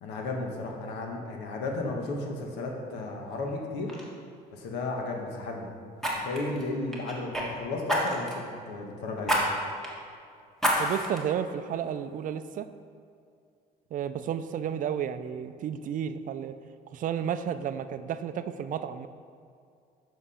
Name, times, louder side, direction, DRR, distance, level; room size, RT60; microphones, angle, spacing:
voice 1, 0.0-3.9 4.5-5.7 6.1-9.4, left 2 dB, 90° left, 1 dB, 1.2 m, -34 dB
Fire, 3.3-3.5 3.9-4.1 6.0-7.5 7.9-8.4 9.2-9.4 9.8-9.9 10.6-11.2 11.7-11.8, equal, ahead, 1.5 m, -28 dB
voice 2, 10.8-12.7 13.9-16.5 16.9-19.1, right 8 dB, 50° right, 11 dB, 0.4 m, -32 dB
7.5 x 5.9 x 4.2 m, 2.4 s
cardioid pair, 110°, 17 cm